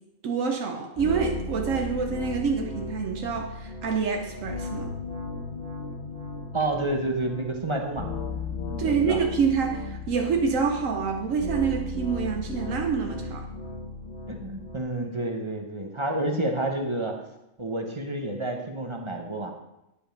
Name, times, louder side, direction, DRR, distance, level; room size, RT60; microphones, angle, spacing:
voice 1, 0.2-4.9 8.8-13.5, right 6 dB, 80° right, 3 dB, 1.2 m, -27 dB
sound 1, 1.0-14.8, left 3 dB, 30° left, 1.4 m, -35 dB
voice 2, 6.5-8.1 8.7-9.2 14.3-17.2 17.6-19.5, right 2 dB, 25° right, 2 dB, 0.8 m, -29 dB
10.0 x 5.2 x 5.1 m, 0.91 s
omnidirectional pair, 1.3 m